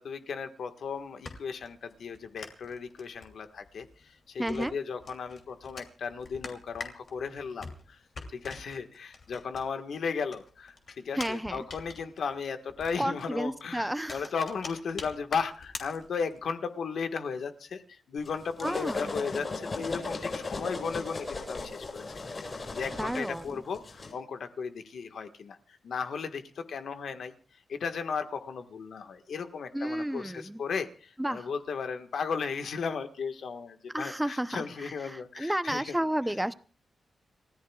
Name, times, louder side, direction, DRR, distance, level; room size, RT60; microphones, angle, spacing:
voice 1, 0.0-8.0 8.3-36.0, left 5 dB, 70° left, 7 dB, 1.5 m, -36 dB
sound 1, 0.8-10.0 10.3-16.5, left 4 dB, 50° left, 2.9 m, -45 dB
voice 2, 4.4-4.7 11.2-11.6 13.0-14.2 18.6-19.0 23.0-23.6 29.7-30.6 31.2-31.5 33.9-36.5, right 1 dB, 5° right, 12 dB, 0.7 m, -32 dB
sound 2, 18.2-24.1, left 3 dB, 35° left, 7.9 m, -37 dB
30.0 x 14.5 x 2.4 m, 0.38 s
wide cardioid pair, 130°, 0 cm